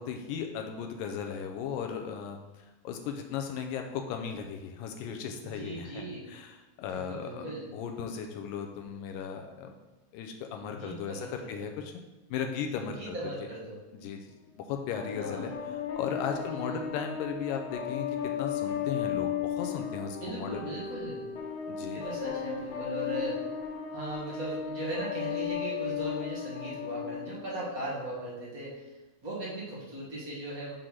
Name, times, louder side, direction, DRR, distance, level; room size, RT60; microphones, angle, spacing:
voice 1, 0.0-9.7 10.1-11.9 12.3-13.2 13.9-14.3 14.6-20.7 21.7-22.0, left 7 dB, 85° left, 4 dB, 2.2 m, -36 dB
voice 2, 5.4-6.3 6.9-7.7 10.7-11.7 12.8-13.8 15.2-15.5 16.3-16.7 20.2-21.2 21.8-23.5 23.9-28.9 29.2-30.7, right 1 dB, 50° right, -5 dB, 1.0 m, -38 dB
sound 1, 14.9-27.9, left 8 dB, 60° left, 2.1 m, -35 dB
6.5 x 3.8 x 5.9 m, 1.1 s
omnidirectional pair, 3.9 m